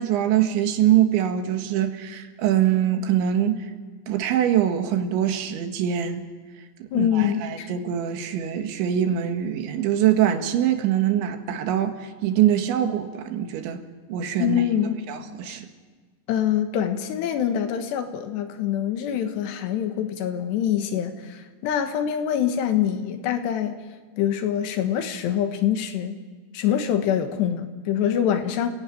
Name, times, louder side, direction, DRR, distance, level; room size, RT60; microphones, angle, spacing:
voice 1, 0.0-3.6 4.1-6.2 6.8-13.8 14.1-14.6 15.1-15.7, right 10 dB, 85° right, 6 dB, 4.0 m, -23 dB
voice 2, 6.9-7.7 14.4-15.0 15.5-15.6 16.3-23.8 24.2-26.2 26.5-28.7, left 9 dB, 75° left, 7 dB, 3.5 m, -25 dB
28.5 x 17.0 x 9.1 m, 1.5 s
omnidirectional pair, 5.2 m